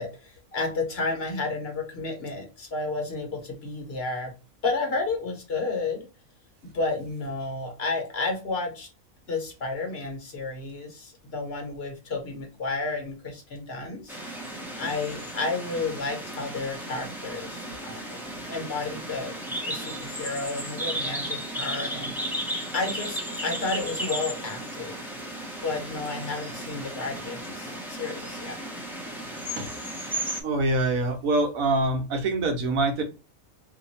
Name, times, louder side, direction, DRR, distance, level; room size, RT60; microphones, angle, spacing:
voice 1, 0.0-4.3 4.6-6.1 6.7-8.9 9.3-14.2 14.7-18.2 18.5-19.4 19.7-22.4 22.7-24.9 25.6-28.6, left 3 dB, 50° left, 3 dB, 1.1 m, -31 dB
sound 1, 14.1-30.4, right 1 dB, ahead, 0.6 m, -35 dB
voice 2, 30.4-33.0, right 2 dB, 80° right, 5 dB, 1.3 m, -24 dB
2.9 x 2.5 x 4.0 m, 0.32 s
omnidirectional pair, 1.4 m